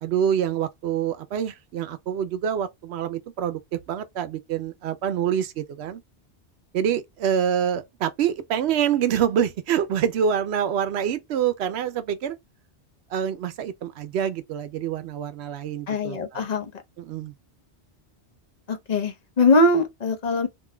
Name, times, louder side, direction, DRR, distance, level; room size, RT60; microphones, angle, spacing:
voice 1, 0.0-6.0 6.7-12.4 13.1-16.5 17.0-17.3, right 9 dB, 75° right, 0.8 m, -26 dB
voice 2, 15.9-16.7 18.7-20.5, left 2 dB, 45° left, 0.8 m, -21 dB
3.8 x 2.6 x 2.2 m
omnidirectional pair, 1.1 m